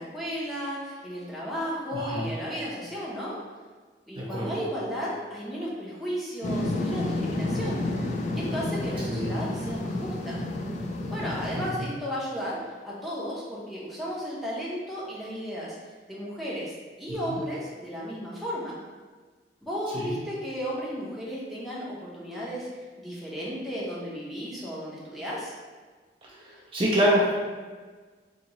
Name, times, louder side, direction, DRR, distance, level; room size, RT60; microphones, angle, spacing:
voice 1, 0.0-3.4 4.1-7.8 8.3-10.4 11.1-15.8 16.1-16.7 17.0-18.8 19.6-22.7 23.0-25.5, equal, ahead, -7 dB, 0.7 m, -34 dB
voice 2, 1.9-2.3 4.2-4.5 9.1-9.4 11.6-11.9 17.3-17.4 19.9-20.2 26.4-27.3, equal, 30° right, -6 dB, 0.5 m, -26 dB
sound 1, 6.4-11.7, left 2 dB, 40° left, 0.3 m, -30 dB
2.8 x 2.8 x 4.0 m, 1.4 s
head